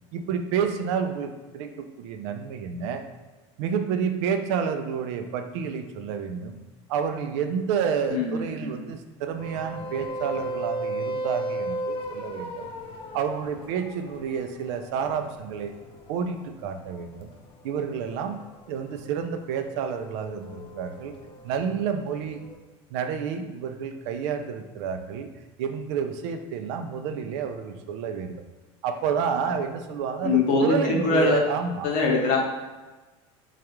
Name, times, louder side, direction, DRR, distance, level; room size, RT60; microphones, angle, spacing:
voice 1, 0.1-3.0 3.6-6.6 6.9-12.7 13.1-15.7 16.1-17.3 17.6-18.4 18.7-21.1 21.4-22.4 22.9-25.3 25.6-28.3 28.8-31.9, right 7 dB, 70° right, 7 dB, 0.4 m, -29 dB
voice 2, 8.1-8.7 30.2-31.5 31.8-32.4, left 3 dB, 60° left, -1 dB, 0.9 m, -23 dB
sound 1, 9.4-22.6, right 1 dB, 35° left, 0.5 m, -36 dB
3.4 x 2.4 x 2.9 m, 1.2 s
supercardioid pair, 100°, 15 cm